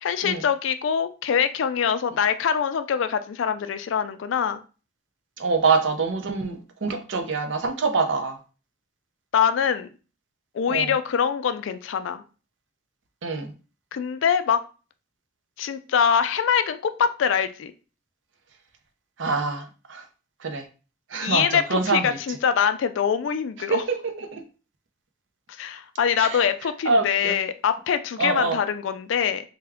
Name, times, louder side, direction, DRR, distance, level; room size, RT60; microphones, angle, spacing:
voice 1, 0.0-4.6 9.3-9.9 10.5-12.2 13.9-14.6 15.6-17.7 21.2-23.8 25.6-29.4, left 7 dB, 70° left, 11 dB, 0.3 m, -24 dB
voice 2, 5.4-8.4 10.7-10.9 13.2-13.5 19.2-19.6 19.9-20.0 20.4-20.6 21.1-22.0 23.7-24.4 26.2-26.4 26.9-27.4 28.2-28.6, right 4 dB, 70° right, 6 dB, 0.6 m, -25 dB
3.4 x 2.2 x 3.4 m, 0.35 s
head